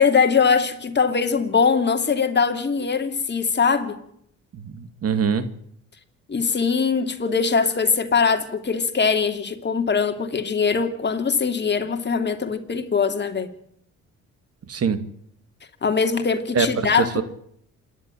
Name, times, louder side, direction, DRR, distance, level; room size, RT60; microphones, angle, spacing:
voice 1, 0.0-4.0 6.3-13.5 15.8-17.2, left 5 dB, 35° left, 2.7 m, -21 dB
voice 2, 4.5-5.5 14.7-15.0 16.5-17.2, right 6 dB, 55° right, 2.1 m, -23 dB
27.0 x 11.0 x 10.0 m
cardioid pair, 90°, 30 cm